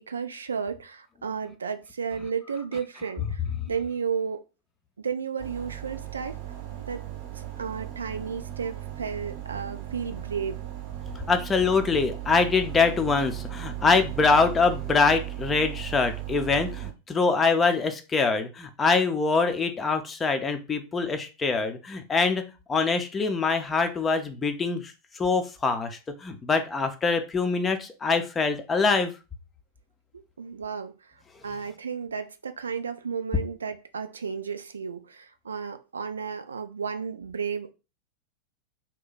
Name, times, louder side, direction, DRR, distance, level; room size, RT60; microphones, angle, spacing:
voice 1, 0.0-4.4 5.0-6.4 6.9-7.1 7.3-10.6 30.4-37.7, right 6 dB, 70° right, 0.3 m, -33 dB
sound 1, 5.4-16.9, right 13 dB, 45° right, 0.7 m, -37 dB
voice 2, 11.3-22.4 22.7-29.1, left 4 dB, 20° left, 0.6 m, -24 dB
2.8 x 2.2 x 4.0 m
figure-of-eight pair, 90°, 0 cm